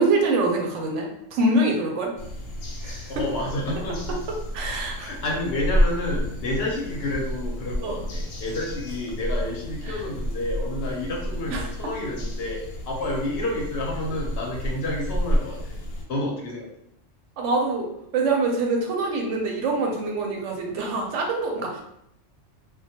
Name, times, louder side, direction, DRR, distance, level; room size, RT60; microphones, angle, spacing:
voice 1, 0.0-2.1 2.8-3.0 4.5-5.1 7.8-8.0 9.9-10.0 11.5-11.6 17.4-17.9 18.1-21.8, right 2 dB, 75° right, 1 dB, 0.9 m, -24 dB
sound 1, 2.2-16.0, equal, 85° left, 1.0 m, -30 dB
voice 2, 3.1-4.2 5.0-15.8 16.1-16.7, left 2 dB, 65° left, -1 dB, 0.7 m, -30 dB
2.2 x 2.1 x 2.8 m, 0.76 s
omnidirectional pair, 1.3 m